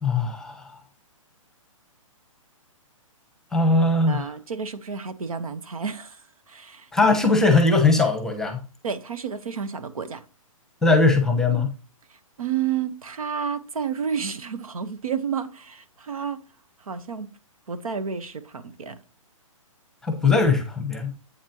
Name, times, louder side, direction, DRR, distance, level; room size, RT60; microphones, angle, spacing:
voice 1, 0.0-0.8 3.5-4.3 6.9-8.6 10.8-11.7 20.0-21.1, left 3 dB, 5° left, 1.0 m, -20 dB
voice 2, 4.1-6.9 8.8-10.2 12.1-16.4 16.8-17.3 17.7-19.0, right 7 dB, 85° right, 1.1 m, -31 dB
8.4 x 7.3 x 2.9 m
hypercardioid pair, 150°, 18 cm